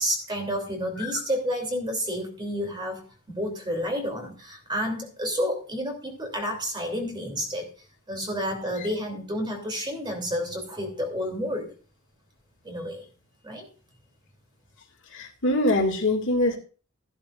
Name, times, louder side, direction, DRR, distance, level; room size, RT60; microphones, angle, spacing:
voice 1, 0.0-7.7 8.1-11.7 12.6-13.0 13.4-13.7, equal, 20° right, 3 dB, 3.0 m, -30 dB
voice 2, 15.1-16.6, left 1 dB, 60° left, 3 dB, 2.2 m, -24 dB
14.0 x 11.5 x 2.5 m, 0.37 s
head